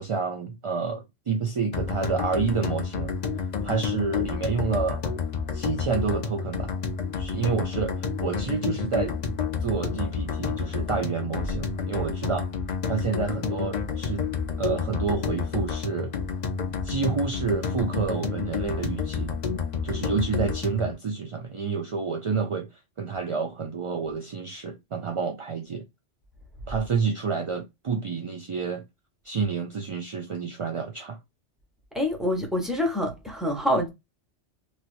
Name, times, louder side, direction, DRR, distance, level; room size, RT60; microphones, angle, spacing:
voice 1, 0.0-3.2 3.6-5.0 5.5-6.7 7.2-9.2 9.6-12.5 12.9-14.2 14.6-16.2 16.8-19.3 19.8-22.7 23.0-25.8 26.7-28.8 29.2-31.2, right 5 dB, 50° right, 0.4 m, -29 dB
sound 1, 1.7-20.9, left 5 dB, 50° left, 0.6 m, -30 dB
voice 2, 31.9-33.9, left 1 dB, ahead, 0.9 m, -26 dB
3.2 x 2.9 x 2.5 m
omnidirectional pair, 1.1 m